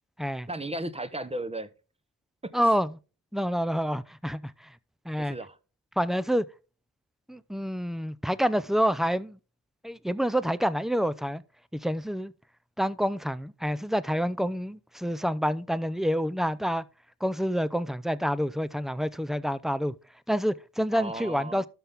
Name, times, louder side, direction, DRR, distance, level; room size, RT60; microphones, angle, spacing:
voice 1, 0.5-1.7 2.4-2.5 5.2-5.6 20.9-21.7, right 1 dB, 15° right, 1.1 m, -35 dB
voice 2, 2.5-3.0 3.3-4.5 5.1-5.4 6.0-6.5 7.3-9.4 9.8-11.4 11.7-12.3 12.8-16.8 17.2-19.9 20.3-21.7, equal, ahead, 0.6 m, -28 dB
12.5 x 5.8 x 3.6 m
cardioid pair, 45°, 36 cm